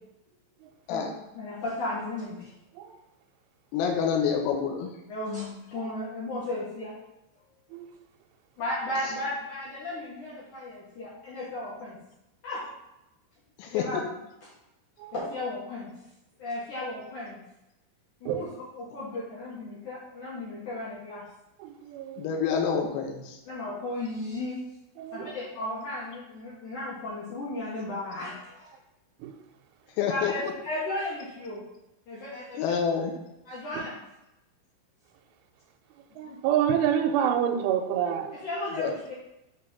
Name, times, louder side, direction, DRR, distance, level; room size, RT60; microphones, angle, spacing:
voice 1, 1.3-2.5 5.1-6.9 8.6-12.0 12.4-12.6 13.6-14.0 15.1-15.9 16.4-17.4 18.2-18.5 18.7-21.2 23.4-24.6 25.1-28.7 30.0-31.6 32.1-32.8 33.4-33.9 36.3-36.4 38.4-39.1, left 2 dB, 70° left, -7 dB, 1.8 m, -35 dB
voice 2, 3.7-4.9 13.6-14.0 22.2-23.4 30.0-30.5 32.6-33.1 38.8-38.9, left 7 dB, 90° left, 2 dB, 3.5 m, -27 dB
voice 3, 21.6-22.4 25.0-25.3 29.2-29.4 33.7-33.8 36.2-38.5, right 9 dB, 85° right, 4 dB, 3.0 m, -28 dB
7.9 x 3.5 x 5.4 m, 0.91 s
omnidirectional pair, 5.8 m